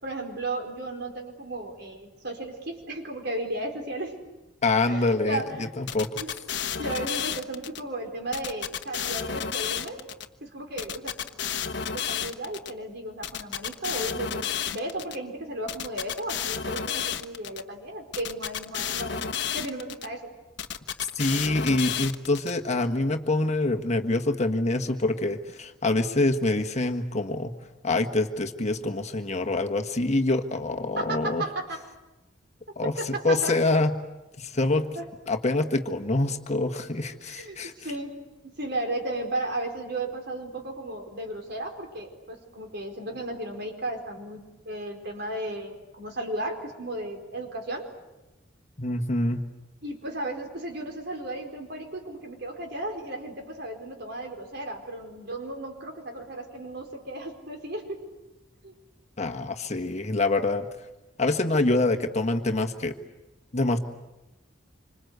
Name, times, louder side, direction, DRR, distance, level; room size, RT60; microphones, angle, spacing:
voice 1, 0.0-4.2 4.9-5.7 6.1-6.5 6.7-10.1 10.4-11.5 11.8-19.2 19.5-20.3 31.0-31.8 32.8-33.6 34.9-35.1 35.5-35.7 37.2-47.9 49.8-58.1 58.6-58.7, right 1 dB, 60° right, 3 dB, 4.6 m, -35 dB
voice 2, 4.6-5.4 5.8-6.1 21.1-27.5 27.8-31.4 32.8-33.9 34.4-34.8 35.3-37.7 48.8-49.4 59.2-60.7 61.2-62.9 63.5-63.8, left 2 dB, 35° left, 5 dB, 1.5 m, -25 dB
sound 1, 5.9-7.8 8.3-10.2 10.8-12.7 13.2-15.2 15.7-17.6 18.1-20.1 20.6-22.5, left 8 dB, 65° left, 1.2 m, -31 dB
27.0 x 26.0 x 8.1 m, 1.0 s
head